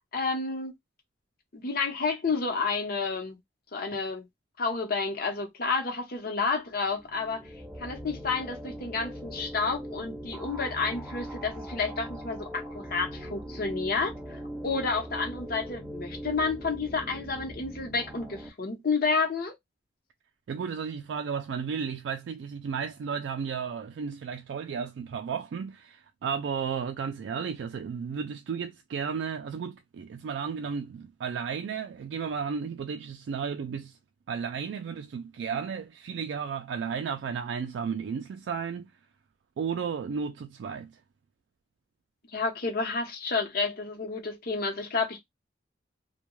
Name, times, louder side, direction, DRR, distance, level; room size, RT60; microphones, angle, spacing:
voice 1, 0.1-0.7 1.5-3.4 3.7-4.2 4.6-7.5 7.8-19.5 42.3-45.2, left 4 dB, 55° left, 0.8 m, -30 dB
sound 1, 6.9-18.5, equal, ahead, 0.4 m, -40 dB
voice 2, 20.5-34.0 34.3-38.9 39.6-41.0, right 6 dB, 75° right, 0.3 m, -33 dB
2.2 x 2.2 x 3.0 m
head